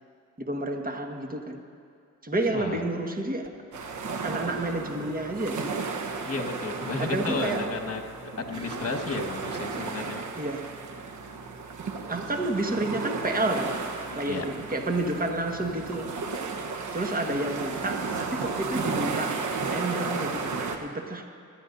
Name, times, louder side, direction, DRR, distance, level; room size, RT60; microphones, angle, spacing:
voice 1, 0.4-1.6 2.2-3.6 4.2-5.8 7.0-7.7 10.3-10.8 12.1-16.2 16.9-21.3, right 2 dB, 25° right, 1.6 m, -30 dB
voice 2, 2.5-2.8 6.2-8.0 8.5-10.2 14.2-14.4, left 3 dB, 45° left, 1.7 m, -32 dB
sound 1, 3.7-20.8, right 4 dB, 60° right, 1.2 m, -34 dB
25.0 x 11.0 x 2.7 m
cardioid pair, 60°, 33 cm